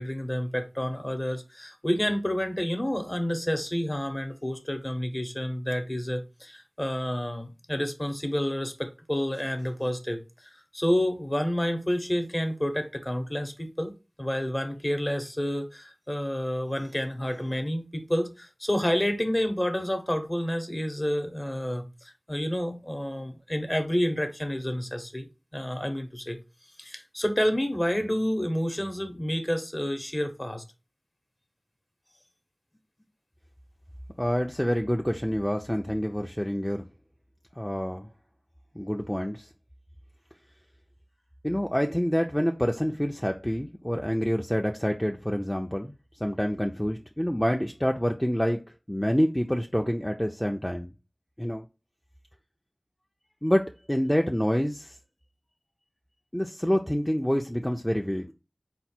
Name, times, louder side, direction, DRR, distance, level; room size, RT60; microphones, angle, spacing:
voice 1, 0.0-13.9 14.2-25.3 25.5-26.4 26.8-30.6, equal, 30° left, 0.8 m, -29 dB
voice 2, 34.2-36.9 37.6-38.1 38.7-39.5 41.4-48.6 48.9-50.9 51.4-51.7 53.4-55.0 56.3-58.3, equal, 10° left, 0.4 m, -27 dB
4.3 x 2.1 x 4.2 m
wide cardioid pair, 45°, 0 cm